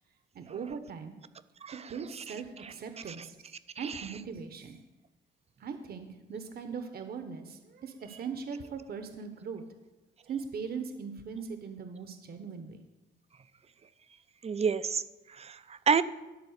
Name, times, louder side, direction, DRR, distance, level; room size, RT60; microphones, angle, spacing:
voice 1, 0.3-1.1 1.7-4.8 5.6-9.6 10.2-12.8, right 6 dB, 50° right, 7 dB, 0.9 m, -40 dB
voice 2, 14.4-15.0 15.3-16.0, right 6 dB, 30° right, 14 dB, 0.5 m, -29 dB
11.5 x 4.2 x 6.5 m, 1.1 s
cardioid pair, 90°, 20 cm